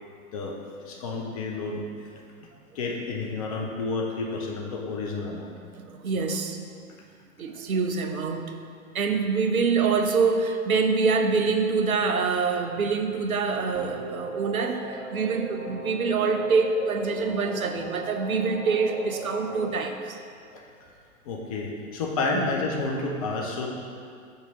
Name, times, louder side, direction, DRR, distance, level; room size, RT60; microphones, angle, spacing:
voice 1, 0.9-1.8 2.4-2.5 2.7-5.5 20.5-20.6 21.2-23.7, left 3 dB, 25° left, 0 dB, 0.6 m, -30 dB
voice 2, 5.7-6.6 7.4-8.6 8.9-20.2 22.3-22.5, right 4 dB, 70° right, 6 dB, 0.7 m, -25 dB
sound 1, 13.7-19.8, right 1 dB, 35° right, 1.2 m, -38 dB
5.8 x 5.5 x 3.9 m, 2.3 s
figure-of-eight pair, 115°, 43 cm